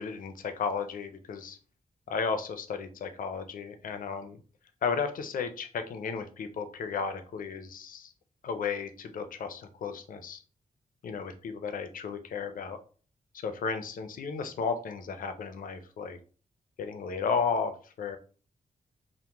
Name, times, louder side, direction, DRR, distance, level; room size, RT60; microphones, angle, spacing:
voice 1, 0.0-1.6 2.1-4.4 4.8-8.1 8.4-10.4 11.0-12.8 13.4-16.2 16.8-18.2, left 5 dB, 70° left, 8 dB, 0.5 m, -34 dB
2.9 x 2.1 x 3.4 m, 0.39 s
wide cardioid pair, 150°, 15 cm